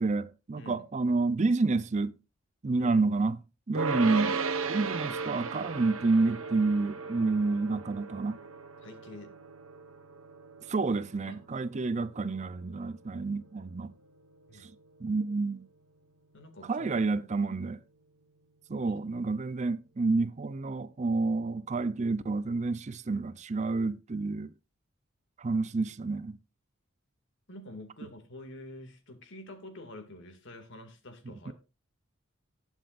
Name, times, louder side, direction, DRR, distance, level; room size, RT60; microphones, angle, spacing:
voice 1, 0.0-2.1 2.6-3.4 3.7-4.4 4.7-8.4 10.7-13.9 14.6-14.7 15.0-15.7 16.7-17.8 18.7-24.5 25.4-26.4 31.5-31.6, right 3 dB, 35° right, 0.5 m, -29 dB
sound 1, 3.7-15.1, right 4 dB, 85° right, 1.3 m, -37 dB
voice 2, 8.8-9.3 11.3-11.4 14.5-14.7 16.3-16.9 18.8-18.9 27.5-31.5, left 1 dB, 60° left, 2.2 m, -47 dB
19.0 x 7.3 x 2.5 m
head